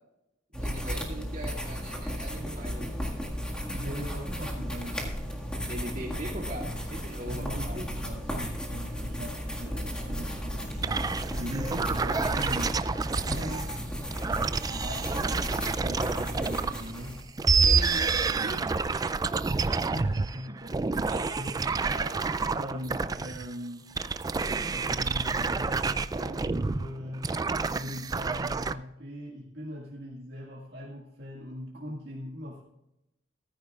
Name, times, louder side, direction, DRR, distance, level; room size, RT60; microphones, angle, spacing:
sound 1, 0.5-17.2, equal, 5° left, 1.7 m, -34 dB
voice 1, 0.5-3.1 5.6-7.8 17.6-18.7 20.5-20.7 21.1-21.3 21.9-22.2, right 1 dB, 45° right, -1 dB, 2.5 m, -40 dB
voice 2, 3.5-5.2 7.3-12.8 13.3-13.7 14.7-17.2 19.9-20.6 21.2-21.8 22.5-23.9 24.7-27.3 27.7-32.6, equal, 65° right, -3 dB, 1.9 m, -40 dB
sound 2, 10.8-13.8 14.1-16.9 17.3-23.5 23.9-28.7, right 4 dB, 20° right, 0.3 m, -28 dB
14.5 x 14.0 x 2.4 m, 0.90 s
head